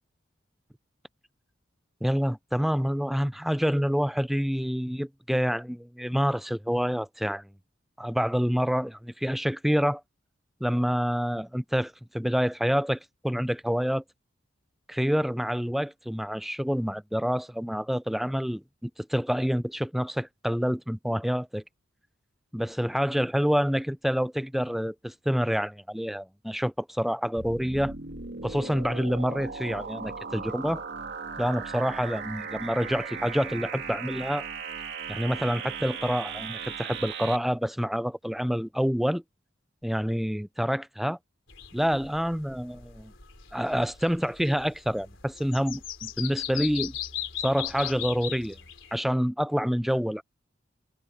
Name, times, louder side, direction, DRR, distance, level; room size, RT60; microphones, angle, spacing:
voice 1, 2.0-7.5 8.0-10.0 10.6-14.0 14.9-21.6 22.5-27.9 28.4-30.8 31.4-34.5 35.1-39.2 39.8-41.2 41.7-43.1 43.5-47.0 47.4-48.6 48.9-50.2, equal, ahead, 0.4 m, -27 dB
sound 1, 27.4-37.4, right 5 dB, 60° right, 2.5 m, -37 dB
sound 2, 41.5-48.9, left 10 dB, 75° left, 3.8 m, -38 dB
head